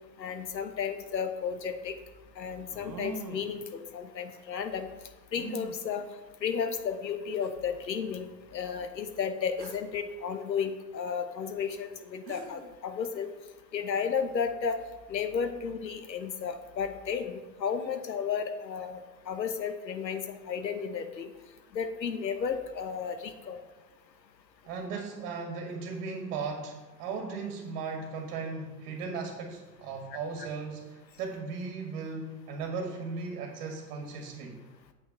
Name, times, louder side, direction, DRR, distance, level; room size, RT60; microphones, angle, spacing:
voice 1, 0.2-1.9 2.4-4.9 5.3-6.0 6.4-13.3 13.7-14.8 15.1-19.0 19.3-21.3 21.7-23.6, left 6 dB, 85° left, 8 dB, 1.1 m, -33 dB
sound 1, 1.2-1.3 2.7-3.6 5.4-5.8 6.8-6.9 7.4-7.5 9.6-10.0 11.9-12.0 12.3-12.7, right 4 dB, 85° right, 1.1 m, -42 dB
voice 2, 24.7-34.6, right 4 dB, 55° right, 2 dB, 1.9 m, -37 dB
8.2 x 5.9 x 6.5 m, 1.2 s
hypercardioid pair, 95°, 50 cm